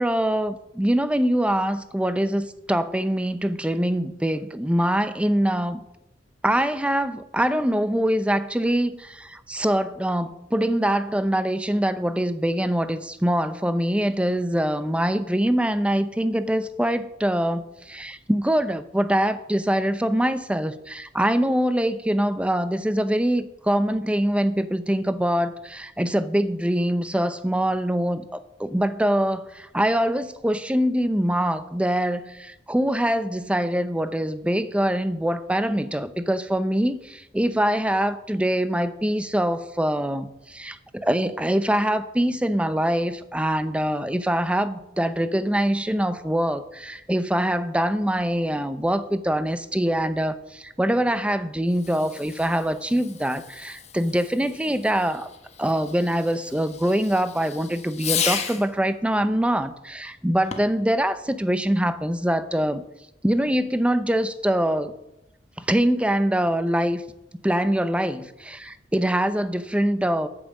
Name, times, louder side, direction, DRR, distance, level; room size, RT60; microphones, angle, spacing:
voice 1, 0.0-5.8 6.4-55.3 55.6-62.8 63.2-64.9 65.6-67.0 67.4-70.3, right 1 dB, 5° right, 12 dB, 0.6 m, -24 dB
Fireworks, 51.7-58.8 60.4-60.9, left 7 dB, 35° left, 1.0 m, -34 dB
8.7 x 7.5 x 7.2 m, 0.88 s
head